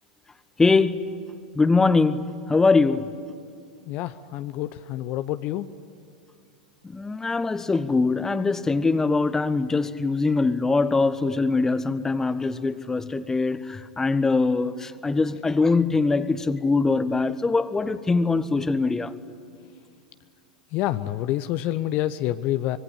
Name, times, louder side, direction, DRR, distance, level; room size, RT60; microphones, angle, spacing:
voice 1, 0.6-1.0 1.5-3.1 6.8-19.1, left 3 dB, 10° left, 1.0 m, -22 dB
voice 2, 3.9-5.7 20.7-22.8, left 14 dB, 40° left, 0.8 m, -27 dB
25.5 x 22.0 x 10.0 m
figure-of-eight pair, 90°, 4 cm